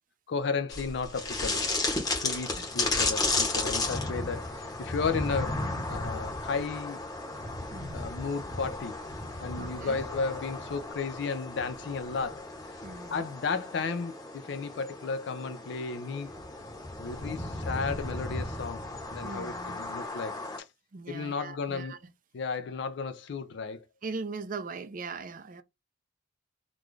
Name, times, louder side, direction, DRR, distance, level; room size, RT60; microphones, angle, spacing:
voice 1, 0.3-1.7 2.2-7.0 7.9-9.0 9.4-12.8 13.1-16.3 17.0-18.9 19.1-20.7 21.1-22.0 22.3-23.8, left 5 dB, 60° left, 0.4 m, -34 dB
sound 1, 0.7-20.6, left 2 dB, 20° left, 1.0 m, -34 dB
voice 2, 7.7-8.0 9.6-10.0 12.8-13.2 17.3-17.5 19.2-19.8 20.9-22.0 24.0-25.6, right 4 dB, 45° right, 0.5 m, -40 dB
3.9 x 2.3 x 3.1 m
head